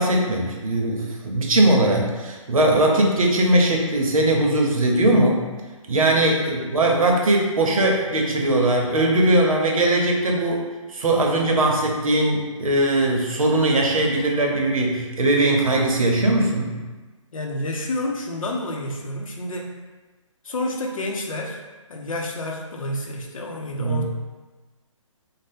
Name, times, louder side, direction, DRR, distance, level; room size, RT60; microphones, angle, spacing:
voice 1, 0.0-5.4 5.9-16.8 23.8-24.0, right 1 dB, 85° right, 0 dB, 0.7 m, -20 dB
voice 2, 6.3-6.7 17.3-19.7 20.4-21.6 21.9-24.0, left 1 dB, 75° left, 1 dB, 0.6 m, -29 dB
2.6 x 2.1 x 3.4 m, 1.3 s
hypercardioid pair, 155°, 17 cm